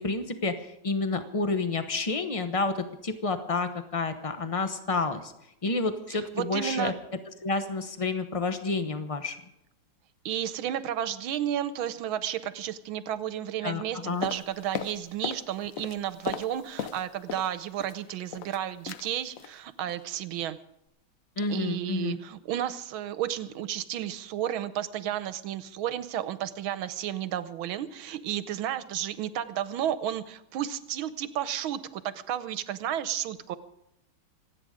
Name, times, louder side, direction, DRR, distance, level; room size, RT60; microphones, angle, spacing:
voice 1, 0.0-2.7 3.0-5.3 5.6-6.9 7.4-9.4 13.6-14.3 21.4-22.2, left 3 dB, 55° left, 9 dB, 0.3 m, -29 dB
voice 2, 6.3-6.9 10.2-20.6 21.5-33.6, right 11 dB, 80° right, 14 dB, 1.5 m, -32 dB
sound 1, 14.2-15.5 15.7-17.5 17.8-18.6 18.9-19.1 19.4-19.6 19.9-20.1 20.4-20.5, left 8 dB, 75° left, 0.7 m, -36 dB
26.5 x 9.0 x 5.0 m, 0.82 s
omnidirectional pair, 2.3 m